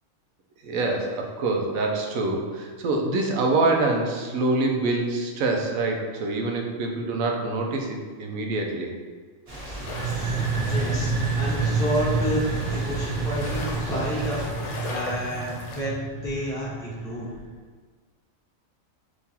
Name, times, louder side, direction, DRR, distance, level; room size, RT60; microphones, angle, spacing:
voice 1, 0.6-8.9, right 2 dB, 80° right, 1 dB, 1.0 m, -25 dB
sound 1, 9.5-14.5, right 1 dB, 30° right, 0.8 m, -36 dB
sound 2, 9.8-17.4, right 3 dB, 65° right, 0.5 m, -29 dB
sound 3, 9.9-15.8, left 2 dB, 70° left, 0.9 m, -39 dB
voice 2, 10.7-11.1 11.4-17.3, equal, 5° left, -7 dB, 0.7 m, -30 dB
3.6 x 3.0 x 2.8 m, 1.5 s
omnidirectional pair, 1.4 m